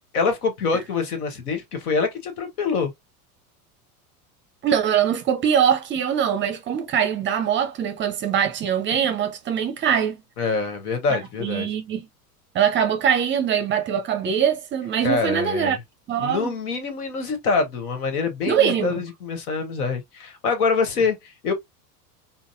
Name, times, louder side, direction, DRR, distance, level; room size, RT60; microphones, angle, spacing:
voice 1, 0.1-2.9 10.4-11.7 15.0-15.8 16.2-21.5, left 4 dB, 75° left, 1.2 m, -25 dB
voice 2, 4.6-10.2 11.1-12.1 12.5-15.8 16.1-16.5 18.5-18.9, right 8 dB, 25° right, 0.5 m, -22 dB
3.9 x 2.0 x 2.5 m
hypercardioid pair, 90°, 46 cm